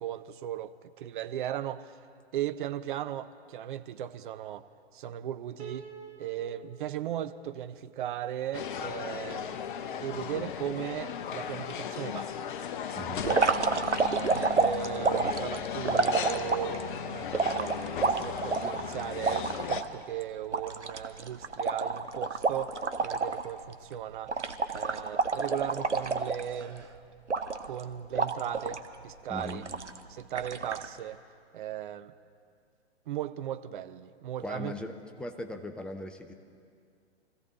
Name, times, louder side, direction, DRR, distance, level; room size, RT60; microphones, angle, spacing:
voice 1, 0.0-1.9 2.3-4.6 4.9-5.9 6.2-9.6 10.0-12.3 13.0-13.6 14.1-24.3 24.7-26.9 27.6-29.6 30.1-31.2 31.5-32.1 33.1-34.7, right 10 dB, 45° right, 11 dB, 0.7 m, -37 dB
Piano, 5.6-8.8, right 7 dB, 70° right, 1.7 m, -50 dB
sound 1, 8.5-19.8, left 8 dB, 50° left, 0.9 m, -36 dB
voice 2, 12.9-13.3 29.3-29.6 34.4-36.3, left 1 dB, 5° left, 5 dB, 0.5 m, -39 dB
sound 2, 13.2-16.8 17.3-19.9 20.2-20.3 20.5-23.5 23.7-23.9 24.3-26.8 27.3-27.8 28.2-28.9 29.4-30.0 30.4-30.9, right 4 dB, 90° right, 0.9 m, -29 dB
24.5 x 15.5 x 3.8 m, 2.2 s
figure-of-eight pair, 110°, 34 cm